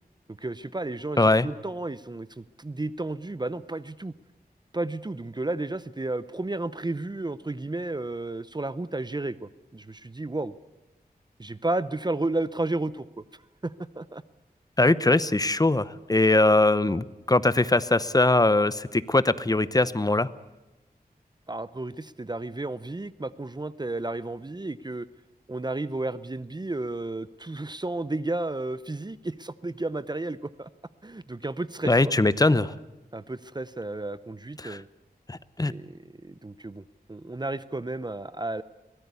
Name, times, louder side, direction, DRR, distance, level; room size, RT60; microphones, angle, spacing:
voice 1, 0.3-4.1 4.7-10.5 11.4-14.2 21.5-25.1 25.5-30.7 31.0-32.0 33.1-34.9 35.7-38.6, right 2 dB, 25° right, 16 dB, 0.7 m, -32 dB
voice 2, 14.8-20.3 31.8-32.7 34.6-34.8 35.3-35.7, left 2 dB, 25° left, 16 dB, 0.8 m, -21 dB
23.5 x 18.0 x 8.4 m, 1.0 s
wide cardioid pair, 80°, 16 cm